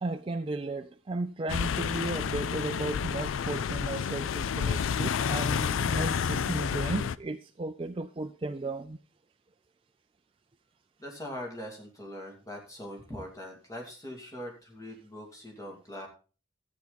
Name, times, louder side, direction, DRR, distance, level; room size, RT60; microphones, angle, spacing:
voice 1, 0.0-9.0, right 2 dB, 25° right, 0.4 m, -35 dB
sound 1, 1.5-7.2, left 7 dB, 80° left, 0.4 m, -30 dB
voice 2, 11.0-16.1, equal, 15° left, 2.4 m, -42 dB
13.0 x 8.3 x 4.0 m
head